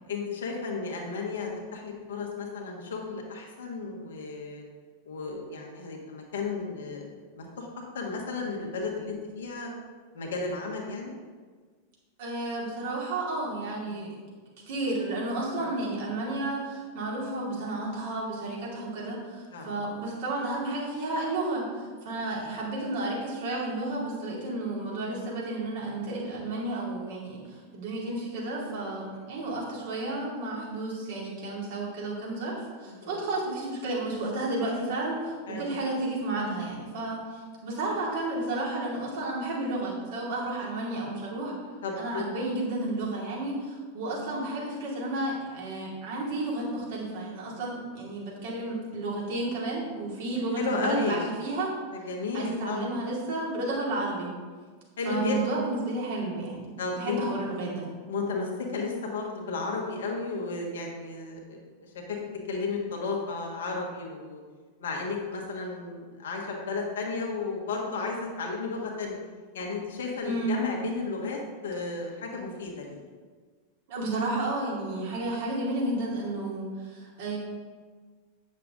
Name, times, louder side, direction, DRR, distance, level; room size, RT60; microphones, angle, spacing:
voice 1, 0.1-4.6 5.0-7.7 7.9-9.7 10.1-11.2 13.9-14.1 15.5-15.6 19.5-19.7 32.9-33.1 35.5-35.7 41.8-42.2 50.6-51.2 51.9-53.1 55.0-55.4 56.8-57.2 58.1-62.2 62.5-64.4 64.8-69.1 69.5-73.0 74.9-75.0, left 4 dB, 60° left, 0 dB, 1.5 m, -33 dB
voice 2, 12.2-14.2 14.7-41.5 42.0-51.7 52.3-54.3 55.0-57.9 70.2-70.6 73.9-77.4, right 2 dB, 55° right, -4 dB, 2.5 m, -32 dB
8.4 x 6.7 x 3.7 m, 1.5 s
figure-of-eight pair, 90°, 0 cm